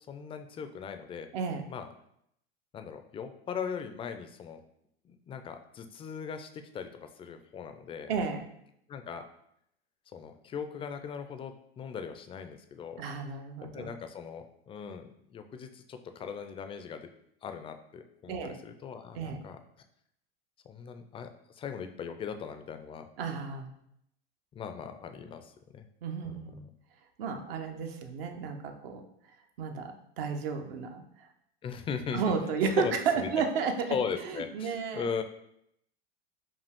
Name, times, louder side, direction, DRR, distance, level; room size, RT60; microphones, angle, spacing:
voice 1, 0.1-1.3 1.7-1.9 2.7-4.6 5.0-8.1 8.9-9.3 10.1-13.0 13.7-17.1 17.4-19.6 20.7-23.1 24.5-25.9 26.3-26.7 31.6-32.3 32.8-33.3 33.9-35.2, left 6 dB, 20° left, 7 dB, 0.3 m, -39 dB
voice 2, 1.3-1.7 8.1-8.5 13.0-13.9 18.3-18.6 19.1-19.4 23.2-23.7 26.0-26.6 27.2-29.0 29.6-31.3 32.1-35.0, right 5 dB, 70° right, 5 dB, 0.8 m, -33 dB
5.1 x 2.4 x 3.5 m, 0.74 s
hypercardioid pair, 100°, 30 cm